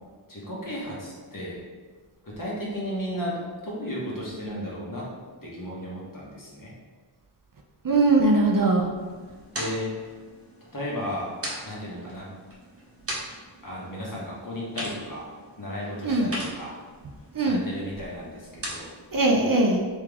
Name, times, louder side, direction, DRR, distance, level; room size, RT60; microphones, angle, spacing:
voice 1, 0.3-1.6 2.2-5.1 5.4-6.7 9.5-10.0 10.7-11.3 11.6-12.3 13.6-15.3 15.6-16.8 17.4-18.9, equal, 45° left, -5 dB, 1.3 m, -34 dB
voice 2, 7.8-8.9 16.0-16.4 17.3-17.6 19.1-19.9, right 2 dB, 45° right, 1 dB, 0.5 m, -21 dB
sound 1, 9.0-19.1, right 1 dB, 30° right, 0.9 m, -40 dB
3.5 x 3.3 x 3.5 m, 1.5 s
wide cardioid pair, 55°, 47 cm